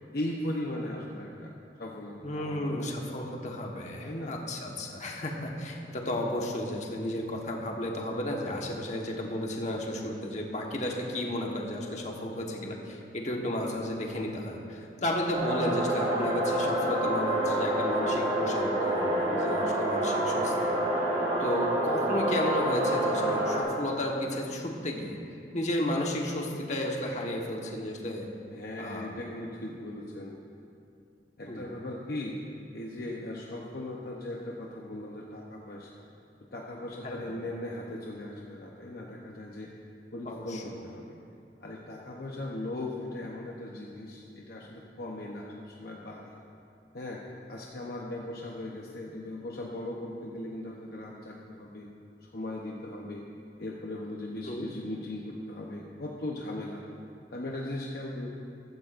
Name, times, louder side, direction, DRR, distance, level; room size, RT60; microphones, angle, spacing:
voice 1, 0.1-1.5 1.8-3.2 4.0-4.4 28.5-30.4 31.4-32.4 32.7-36.0 36.5-39.7 40.1-41.2 41.6-46.4 46.9-47.2 47.5-51.9 52.2-53.2 53.6-56.8 57.3-58.3, left 1 dB, 60° left, -2 dB, 0.9 m, -38 dB
voice 2, 2.2-20.7 21.4-25.2 25.5-28.3 28.8-29.1 31.5-31.7 37.0-37.3 40.2-40.8 54.4-54.7, left 1 dB, 40° left, 0 dB, 1.3 m, -33 dB
sound 1, 15.3-23.6, right 1 dB, 40° right, 2.1 m, -27 dB
14.5 x 13.0 x 2.6 m, 2.5 s
head